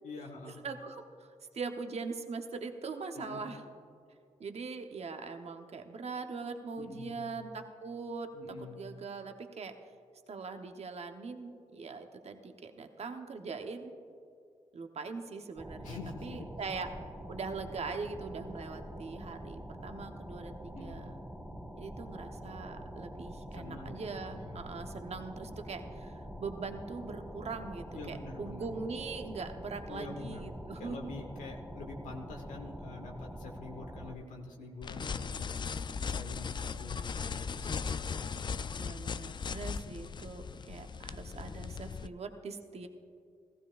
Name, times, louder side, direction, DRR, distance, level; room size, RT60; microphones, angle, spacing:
voice 1, 0.0-0.6 3.2-3.4 6.8-7.4 8.3-8.8 15.8-16.5 20.7-21.1 23.5-24.9 27.9-28.7 29.9-35.5 36.0-38.2, left 3 dB, 80° left, 1 dB, 1.1 m, -46 dB
voice 2, 0.6-3.6 4.4-8.3 8.7-9.7 10.3-14.0 14.7-16.9 17.3-21.1 21.8-31.1 38.8-42.9, right 4 dB, 55° right, 6 dB, 1.0 m, -41 dB
sound 1, 15.6-34.2, equal, ahead, 1.7 m, -45 dB
sound 2, 34.8-42.1, left 5 dB, 35° left, 0.3 m, -38 dB
16.0 x 14.5 x 2.5 m, 2.4 s
supercardioid pair, 45°, 13 cm